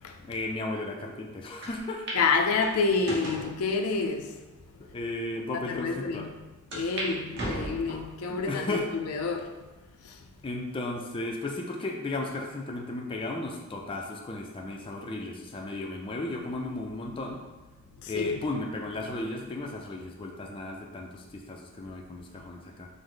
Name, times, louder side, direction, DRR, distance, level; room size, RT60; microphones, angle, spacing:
voice 1, 0.2-2.1 4.9-6.3 8.3-8.9 10.4-17.4 18.1-22.9, left 2 dB, 25° left, 0.4 m, -35 dB
sound 1, 1.6-1.7 2.1-2.2 2.6-3.5 4.2-4.3 5.0-5.1 5.3-5.4 6.7-7.1 7.3-8.1 8.7-9.1 9.7-9.8 10.9-11.3, right 1 dB, 50° right, 1.1 m, -35 dB
voice 2, 2.1-4.4 4.7-4.8 5.5-6.3 6.7-8.7 8.9-9.6 10.0-10.2 18.0-18.4, left 4 dB, 85° left, 0.4 m, -28 dB
5.1 x 2.0 x 3.8 m
head